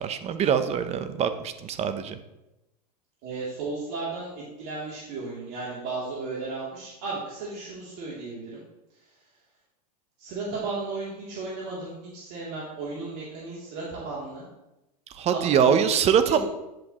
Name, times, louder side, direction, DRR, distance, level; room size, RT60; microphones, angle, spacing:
voice 1, 0.0-2.2 15.1-16.4, right 8 dB, 30° right, 10 dB, 0.9 m, -23 dB
voice 2, 3.2-8.6 8.9-9.2 10.2-14.4 15.3-15.8 16.2-16.4, right 3 dB, 55° right, -7 dB, 3.1 m, -34 dB
10.5 x 7.7 x 3.1 m, 0.96 s
hypercardioid pair, 110°, 20 cm